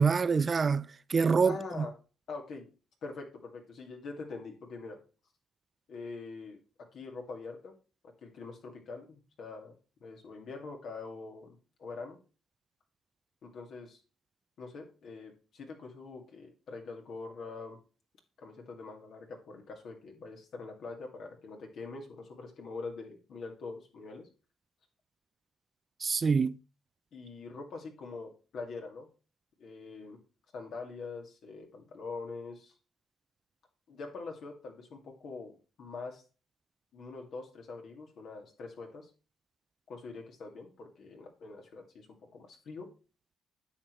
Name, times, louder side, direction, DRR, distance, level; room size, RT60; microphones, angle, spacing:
voice 1, 0.0-1.9 26.0-26.6, right 5 dB, 35° right, 0.3 m, -26 dB
voice 2, 1.4-1.9 2.3-2.7 3.0-5.0 5.9-6.6 6.9-7.7 8.2-9.7 10.0-12.2 13.4-14.0 14.6-17.8 18.4-24.3 27.1-29.1 29.6-30.2 30.5-32.7 33.9-36.2 36.9-39.1 39.9-42.9, left 4 dB, 65° left, 2.1 m, -44 dB
9.5 x 6.4 x 3.1 m
cardioid pair, 90°, 0 cm